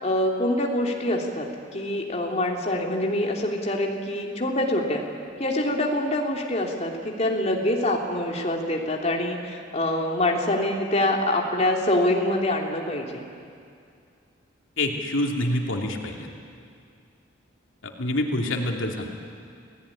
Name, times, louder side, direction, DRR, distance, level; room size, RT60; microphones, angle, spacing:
voice 1, 0.0-5.0 5.4-13.3, left 1 dB, 35° left, 0 dB, 3.1 m, -25 dB
voice 2, 14.8-16.3 17.8-19.1, left 1 dB, 90° left, 1 dB, 2.8 m, -26 dB
28.5 x 18.0 x 10.0 m, 2.3 s
head